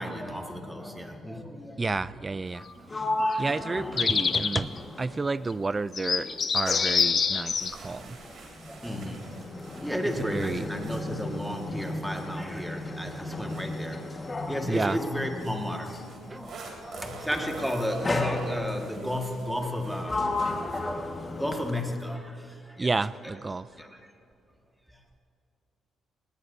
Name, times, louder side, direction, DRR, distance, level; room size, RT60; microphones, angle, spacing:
voice 1, 0.0-2.4 2.7-4.0 4.5-4.7 8.6-9.3 9.8-14.0 14.5-22.9 23.2-23.3 23.7-24.1 24.9-25.0, left 1 dB, ahead, 2 dB, 1.8 m, -34 dB
voice 2, 1.8-2.6 2.9-3.1 3.4-4.7 5.0-6.3 6.5-8.2 10.3-10.6 14.7-15.0 16.3-16.4 22.8-23.7, right 3 dB, 25° right, 17 dB, 0.4 m, -30 dB
Sliding door, 2.5-5.8 6.1-16.2 17.1-17.4 18.0-19.0 19.6-22.1, left 2 dB, 30° left, 1.6 m, -35 dB
sound 1, 3.3-3.4 4.0-4.6 5.5-5.6 5.9-7.7, left 6 dB, 45° left, 0.7 m, -25 dB
sound 2, 7.5-14.5 15.2-20.8, right 3 dB, 65° right, 3.2 m, -45 dB
19.5 x 18.0 x 2.7 m, 2.7 s
cardioid pair, 90°, 0 cm